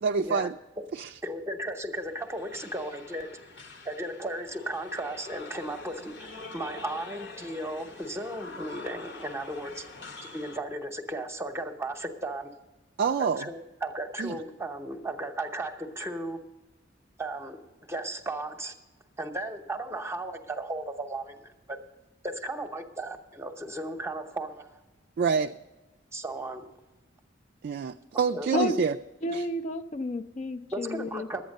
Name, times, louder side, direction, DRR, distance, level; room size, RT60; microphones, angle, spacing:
voice 1, 0.0-0.5 0.9-1.1 13.0-13.4 14.2-14.4 25.2-25.5 27.6-28.9 29.3-29.4, right 5 dB, 55° right, 5 dB, 0.3 m, -27 dB
voice 2, 1.2-3.5 3.8-9.8 10.2-12.5 13.2-16.4 17.2-17.6 17.9-18.7 19.2-21.8 22.2-24.8 26.1-26.7 28.3-28.6 30.7-31.4, right 1 dB, 15° right, 5 dB, 0.8 m, -35 dB
sound 1, 2.0-10.6, left 3 dB, 65° left, 1.1 m, -45 dB
voice 3, 29.2-31.3, left 1 dB, 35° left, 7 dB, 0.4 m, -31 dB
11.5 x 8.7 x 6.5 m, 1.1 s
head